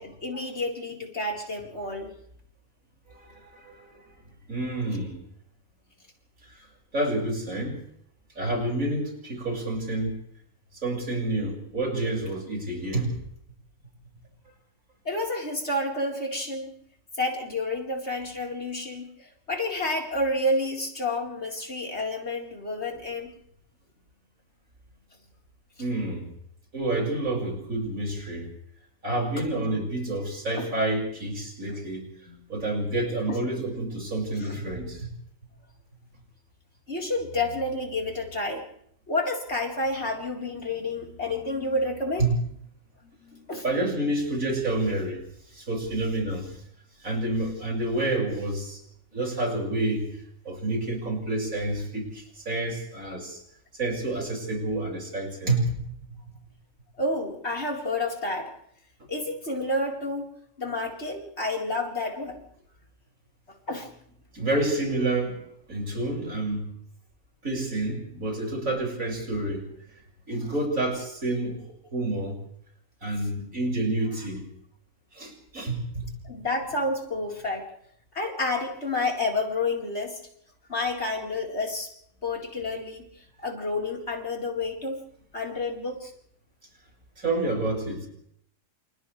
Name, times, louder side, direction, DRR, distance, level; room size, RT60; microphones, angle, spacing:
voice 1, 0.0-2.1 15.0-16.7 17.2-23.3 29.4-29.5 30.6-30.7 32.3-32.4 33.3-33.4 34.4-34.5 36.9-38.6 39.1-42.3 43.0-43.6 57.0-58.5 59.1-60.3 60.6-62.4 63.7-63.9 76.2-77.7 78.1-80.2 80.7-81.9 82.2-83.1 83.4-85.0 85.3-86.1, left 2 dB, 55° left, -1 dB, 4.6 m, -30 dB
voice 2, 3.1-4.2 4.5-5.2 6.5-6.7 6.9-7.8 8.3-10.2 10.8-13.1 25.8-26.3 26.7-28.5 29.0-32.1 32.5-35.1 42.2-42.3 43.6-45.2 45.5-46.6 47.0-48.8 49.1-50.1 50.4-53.4 53.7-55.8 64.3-65.4 65.7-66.7 67.4-69.7 70.3-72.4 73.0-74.5 75.1-76.1 87.2-88.1, right 2 dB, 90° right, 0 dB, 6.5 m, -29 dB
28.5 x 28.0 x 3.3 m, 0.69 s
omnidirectional pair, 1.4 m